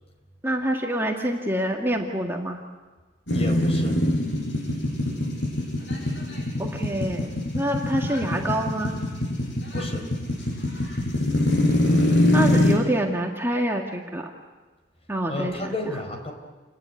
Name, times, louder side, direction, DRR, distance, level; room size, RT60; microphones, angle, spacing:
voice 1, 0.4-2.6 6.6-7.3 7.5-9.0 12.3-14.2 15.1-15.7, right 1 dB, 15° right, 0 dB, 2.0 m, -26 dB
sound 1, 3.3-12.7, left 1 dB, 75° left, 6.9 m, -24 dB
voice 2, 3.3-4.0 9.7-10.0 15.3-16.3, left 1 dB, 35° left, 4 dB, 4.8 m, -32 dB
29.0 x 20.0 x 9.4 m, 1.3 s
head